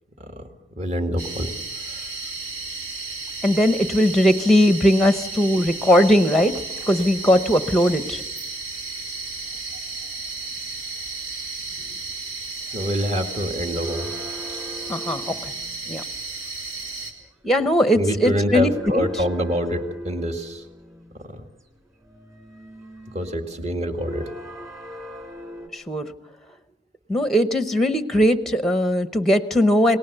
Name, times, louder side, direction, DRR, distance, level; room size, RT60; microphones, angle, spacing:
voice 1, 0.8-1.5 1.9-2.0 12.7-14.1 17.9-20.6 21.3-21.4 23.1-24.3, equal, 35° right, 5 dB, 2.0 m, -25 dB
sound 1, 1.2-17.1, right 3 dB, 90° right, 3.7 m, -33 dB
voice 2, 3.4-6.5 6.9-8.2 14.9-15.5 15.9-16.0 17.4-19.2 25.7-26.1 27.1-30.0, equal, ahead, 10 dB, 0.8 m, -19 dB
sound 2, 13.7-16.1 18.0-21.2 21.8-25.7, equal, 15° right, 2.7 m, -40 dB
29.0 x 19.5 x 6.8 m, 0.98 s
head